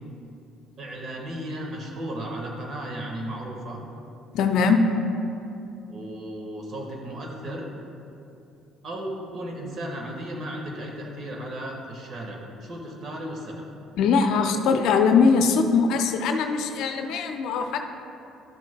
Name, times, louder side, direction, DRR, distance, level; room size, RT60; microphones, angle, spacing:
voice 1, 0.8-3.8 5.9-7.7 8.8-13.7, right 1 dB, 50° right, 0 dB, 1.5 m, -35 dB
voice 2, 4.3-4.8 14.0-17.8, left 5 dB, 65° left, 5 dB, 0.5 m, -21 dB
12.0 x 6.2 x 2.2 m, 2.7 s
hypercardioid pair, 55°, 0 cm